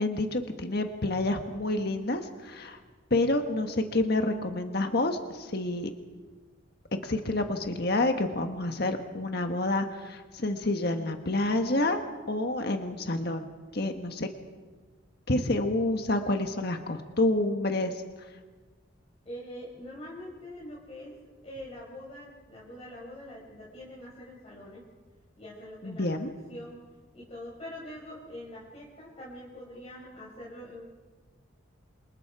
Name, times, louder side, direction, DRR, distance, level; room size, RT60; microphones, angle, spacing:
voice 1, 0.0-2.8 3.1-5.9 7.0-12.0 12.3-14.3 15.3-18.3 25.8-26.3, left 2 dB, 55° left, 5 dB, 1.5 m, -28 dB
voice 2, 19.3-21.2 21.4-24.8 25.4-26.2 26.5-26.8 27.1-30.8, left 1 dB, 30° left, -6 dB, 5.5 m, -44 dB
28.0 x 27.5 x 4.8 m, 1.4 s
head